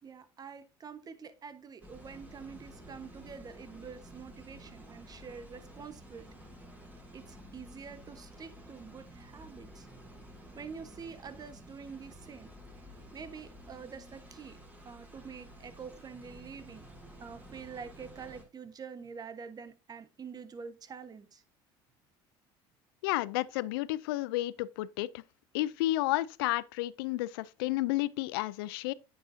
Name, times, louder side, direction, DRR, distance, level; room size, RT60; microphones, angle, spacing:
voice 1, 0.0-6.3 7.1-9.9 10.5-12.5 13.1-14.6 14.8-16.8 17.2-21.4, right 6 dB, 35° right, 1.1 m, -46 dB
sound 1, 1.8-18.4, equal, 15° right, 3.9 m, -52 dB
voice 2, 23.0-25.2 25.5-28.9, left 17 dB, 90° left, 0.4 m, -31 dB
9.1 x 7.1 x 2.6 m
supercardioid pair, 90°, 12 cm